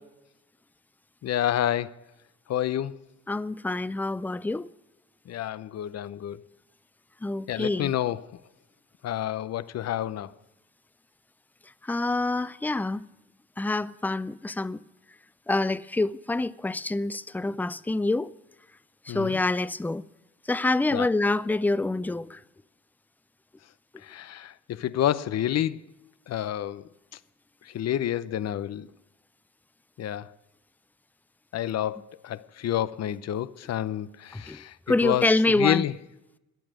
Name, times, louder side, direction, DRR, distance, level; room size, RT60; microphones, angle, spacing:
voice 1, 1.2-2.0 2.5-3.0 5.3-6.4 7.5-8.4 9.0-10.3 19.1-19.4 20.9-21.1 24.0-25.9 26.3-26.9 27.6-28.9 30.0-30.3 31.5-34.8 35.0-35.9, left 11 dB, 60° left, 0.7 m, -29 dB
voice 2, 3.3-4.7 7.2-7.9 11.8-13.1 13.6-14.8 15.5-18.3 19.1-20.0 20.5-22.4 34.3-34.6 34.9-35.8, left 2 dB, 5° left, 0.4 m, -26 dB
15.5 x 11.0 x 5.0 m
cardioid pair, 90°, 30 cm